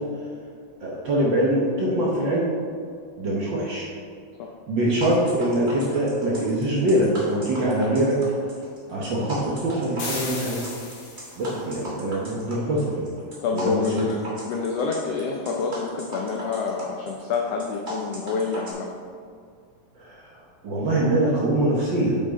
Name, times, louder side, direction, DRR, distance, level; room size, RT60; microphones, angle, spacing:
voice 1, 0.8-2.5 3.2-3.9 4.7-8.2 8.9-10.7 11.4-13.0 13.5-14.0 20.0-20.3 20.6-22.2, right 1 dB, 65° right, -4 dB, 1.1 m, -23 dB
sound 1, 5.0-18.7, right 1 dB, 35° right, 0.7 m, -38 dB
sound 2, 10.0-11.5, left 3 dB, 60° left, 2.3 m, -34 dB
voice 2, 13.4-18.9, left 5 dB, 80° left, 0 dB, 1.4 m, -28 dB
7.6 x 6.3 x 4.0 m, 2.2 s
omnidirectional pair, 3.5 m